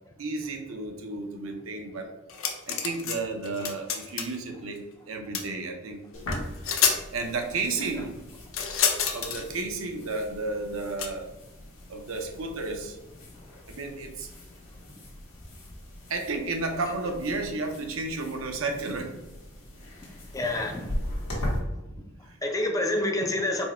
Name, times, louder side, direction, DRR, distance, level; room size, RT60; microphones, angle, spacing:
voice 1, 0.2-2.1 2.7-6.0 7.1-8.1 9.1-11.3 11.9-13.0 13.7-14.3 16.1-19.1 22.2-22.4, right 3 dB, 75° right, 4 dB, 0.7 m, -32 dB
sound 1, 2.3-3.2 3.4-4.4 5.3-5.5 6.3-6.4 6.6-7.0 8.5-9.4 11.0-11.1, left 7 dB, 70° left, 0.6 m, -27 dB
sound 2, 6.1-21.6, left 1 dB, 85° left, 1.3 m, -39 dB
voice 2, 20.3-20.9 21.3-21.5 22.4-23.6, left 1 dB, 15° left, 3 dB, 0.4 m, -27 dB
4.5 x 2.1 x 4.2 m, 0.99 s
head